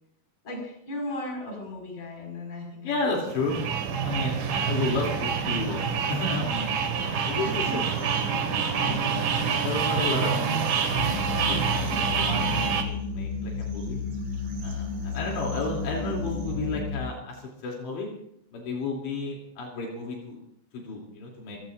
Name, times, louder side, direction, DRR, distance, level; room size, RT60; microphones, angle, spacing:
voice 1, 0.4-3.2 4.6-4.8 5.1-5.2 7.0-7.9, left 1 dB, 35° left, 0 dB, 6.4 m, -37 dB
voice 2, 2.8-3.6 4.0-6.8 7.3-7.8 8.8-9.1 9.6-10.6 11.5-11.6 12.2-12.5 12.9-14.0 14.6-18.1 18.5-20.4 20.7-21.6, left 3 dB, 80° left, -1 dB, 5.2 m, -32 dB
sound 1, 3.3-12.8, right 6 dB, 60° right, 3.1 m, -27 dB
sound 2, 7.3-16.8, right 3 dB, 85° right, 5.3 m, -40 dB
sound 3, 11.0-17.1, left 5 dB, 55° left, 4.7 m, -32 dB
28.0 x 16.5 x 2.6 m, 0.75 s
omnidirectional pair, 5.1 m